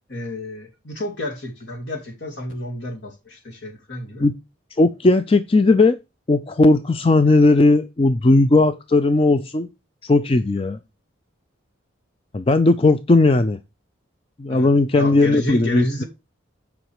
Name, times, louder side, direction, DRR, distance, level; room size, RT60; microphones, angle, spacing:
voice 1, 0.1-4.3 14.5-16.0, left 1 dB, 60° left, 2.6 m, -30 dB
voice 2, 4.8-6.0 6.3-9.7 10.0-10.8 12.3-13.6 14.4-16.0, left 2 dB, 30° left, 0.4 m, -17 dB
9.2 x 5.3 x 4.8 m
head